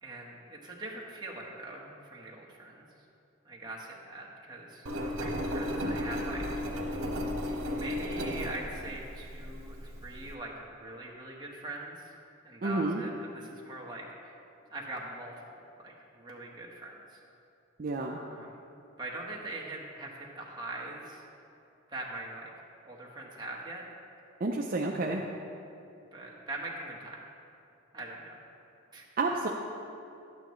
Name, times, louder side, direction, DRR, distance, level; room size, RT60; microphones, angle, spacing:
voice 1, 0.0-2.8 3.4-6.4 7.6-12.1 12.4-14.4 14.7-17.2 18.3-18.5 19.0-21.2 21.9-22.5 22.8-23.8 25.0-25.2 26.1-27.2 27.9-28.4 28.9-29.1, right 2 dB, 20° right, -3 dB, 1.2 m, -42 dB
Engine, 4.8-10.3, left 1 dB, 70° right, 1.2 m, -34 dB
voice 2, 12.6-13.0 17.8-18.2 24.4-25.2 29.2-29.5, right 2 dB, 45° right, 0 dB, 0.5 m, -30 dB
12.0 x 8.9 x 3.1 m, 2.7 s
head